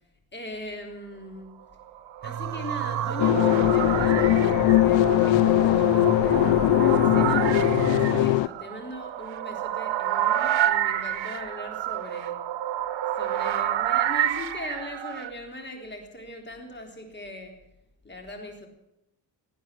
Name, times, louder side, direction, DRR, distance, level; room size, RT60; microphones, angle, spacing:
voice 1, 0.3-1.6 2.2-7.5 7.9-12.4 13.2-17.6 18.0-18.7, left 1 dB, 25° left, 3 dB, 3.7 m, -40 dB
sound 1, 1.9-15.3, right 11 dB, 80° right, 1.2 m, -29 dB
sound 2, 2.2-8.4, right 10 dB, 40° right, 0.5 m, -31 dB
sound 3, 3.2-8.5, left 16 dB, 80° left, 0.6 m, -20 dB
18.0 x 9.2 x 8.2 m, 0.86 s
cardioid pair, 120°, 44 cm